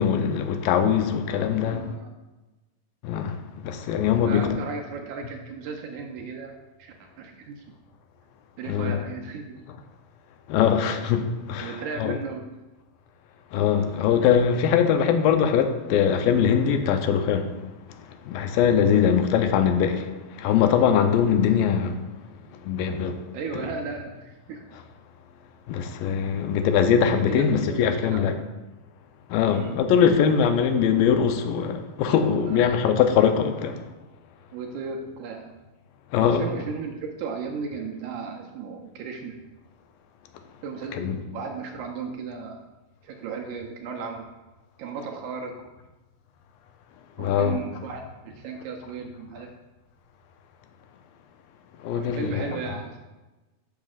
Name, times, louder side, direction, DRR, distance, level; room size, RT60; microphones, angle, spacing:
voice 1, 0.0-1.9 3.0-4.5 8.7-9.0 10.5-12.2 13.5-17.5 17.9-22.0 22.5-23.2 23.5-23.7 25.7-28.3 29.3-33.8 36.1-36.4 41.0-41.2 47.2-47.6 51.8-52.5, left 7 dB, 90° left, 2.4 m, -22 dB
voice 2, 1.6-2.1 4.1-7.6 8.6-9.6 11.6-12.6 18.9-19.1 23.3-24.7 27.3-28.4 29.5-29.9 32.2-32.7 34.5-35.5 36.2-39.4 40.6-42.7 43.0-44.2 44.8-45.6 47.2-49.5 51.9-53.0, right 5 dB, 75° right, 2.0 m, -35 dB
11.5 x 7.2 x 2.4 m
omnidirectional pair, 4.0 m